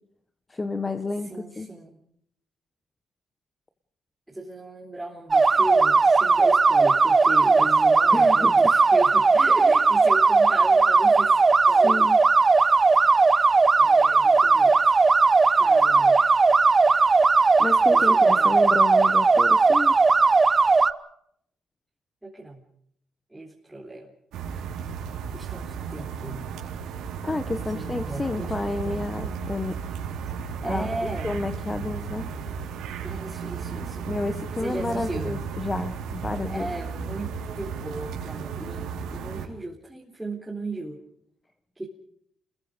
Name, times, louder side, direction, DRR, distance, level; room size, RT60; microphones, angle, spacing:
voice 1, 0.5-1.7 8.1-8.6 11.8-12.2 17.6-19.9 27.2-29.8 30.6-30.9 31.2-32.3 34.0-36.7, left 3 dB, 20° left, 8 dB, 1.4 m, -30 dB
voice 2, 1.2-2.0 4.3-11.4 11.7-12.1 12.7-13.2 13.4-14.9 15.5-16.2 17.8-18.7 22.2-22.6 23.3-24.1 24.5-24.9 25.3-26.5 27.7-29.3 30.6-31.3 33.0-34.1 34.6-35.4 36.5-41.0 41.8-41.9, right 2 dB, 10° right, -3 dB, 3.8 m, -36 dB
sound 1, 5.3-20.9, right 4 dB, 30° right, 1.0 m, -18 dB
sound 2, 24.3-39.5, right 6 dB, 85° right, 4.5 m, -34 dB
28.5 x 21.0 x 5.2 m, 0.70 s
cardioid pair, 90°, 0 cm